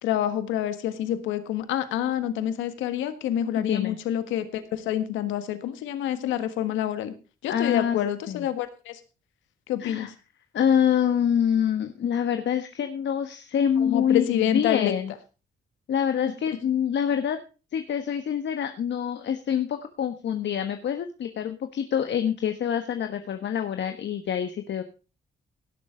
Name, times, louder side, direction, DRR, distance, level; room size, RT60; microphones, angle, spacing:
voice 1, 0.0-7.1 7.4-9.0 9.7-10.1 13.8-14.9, left 11 dB, 90° left, 11 dB, 1.5 m, -27 dB
voice 2, 3.5-4.0 7.5-8.0 8.3-8.5 9.8-10.1 10.5-15.1 15.9-17.4 17.7-24.8, left 8 dB, 70° left, 8 dB, 1.3 m, -26 dB
17.0 x 7.3 x 5.0 m, 0.34 s
supercardioid pair, 55°, 19 cm